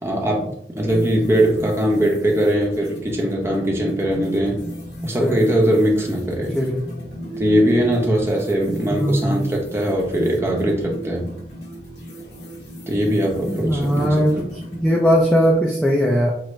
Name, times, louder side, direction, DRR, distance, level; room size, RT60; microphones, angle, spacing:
voice 1, 0.0-4.6 5.0-6.5 7.4-11.3 12.9-14.2, right 1 dB, 15° right, -2 dB, 0.7 m, -20 dB
sound 1, 0.8-15.6, right 1 dB, 70° left, 1.3 m, -35 dB
voice 2, 5.0-5.4 6.4-6.8 8.9-9.5 13.5-16.3, equal, 5° left, -3 dB, 0.4 m, -19 dB
6.0 x 2.0 x 3.2 m, 0.74 s
head